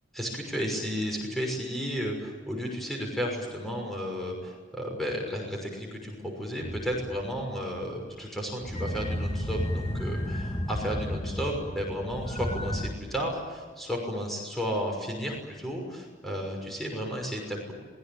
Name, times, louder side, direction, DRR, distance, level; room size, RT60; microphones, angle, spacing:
voice 1, 0.1-17.7, equal, ahead, 0 dB, 6.1 m, -33 dB
sound 1, 6.6-8.2 8.6-12.9, left 1 dB, 30° left, 2.6 m, -33 dB
28.0 x 22.5 x 8.9 m, 1.5 s
head